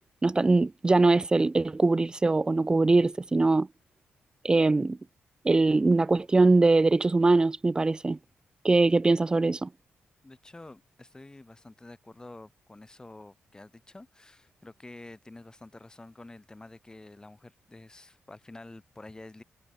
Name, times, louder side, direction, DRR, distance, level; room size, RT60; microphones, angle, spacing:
voice 1, 0.2-3.7 4.4-5.0 5.4-8.2 8.6-9.7, right 3 dB, 20° right, 0.4 m, -22 dB
voice 2, 10.2-19.4, left 2 dB, 20° left, 5.0 m, -48 dB
cardioid pair, 90°, 4 cm